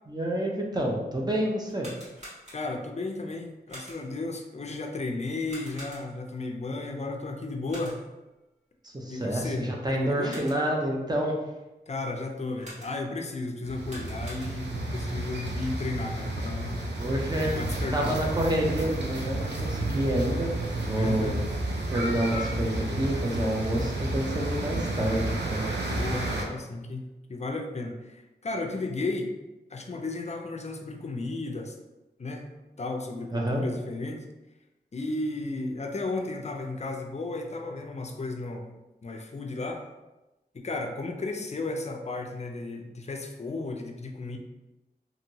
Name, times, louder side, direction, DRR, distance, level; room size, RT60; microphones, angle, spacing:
voice 1, 0.1-1.9 8.8-11.4 17.0-17.6 17.9-21.4 21.9-25.7 33.3-33.6, right 1 dB, 25° right, -1 dB, 0.6 m, -28 dB
sound 1, 1.7-2.9 3.7-4.2 5.5-6.3 7.7-8.2 10.0-10.8 12.6-13.2 13.7-14.9, equal, 40° right, 1.4 m, -46 dB
voice 2, 2.5-8.0 9.1-10.3 11.9-16.8 17.5-18.2 21.0-21.4 25.8-29.3 29.7-31.8 32.2-32.4 32.8-34.2 34.9-38.7 39.0-39.8 40.5-44.4, left 2 dB, 40° left, 3 dB, 0.4 m, -34 dB
sound 2, 13.6-26.5, right 1 dB, 85° right, 0.5 m, -31 dB
2.8 x 2.6 x 2.7 m, 1.0 s
wide cardioid pair, 65°, 17 cm